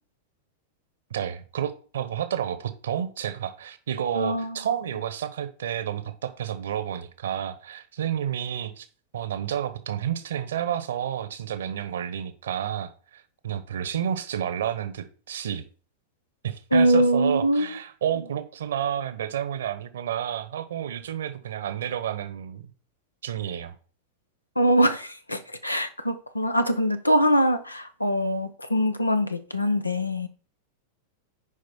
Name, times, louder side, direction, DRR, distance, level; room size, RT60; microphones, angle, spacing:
voice 1, 1.1-8.9 9.1-15.6 16.4-22.7 23.2-23.7, right 9 dB, 65° right, 1.1 m, -30 dB
voice 2, 4.1-4.6 16.7-17.8 24.6-30.3, equal, 85° left, 0.8 m, -23 dB
10.0 x 5.1 x 4.4 m
figure-of-eight pair, 90°, 0 cm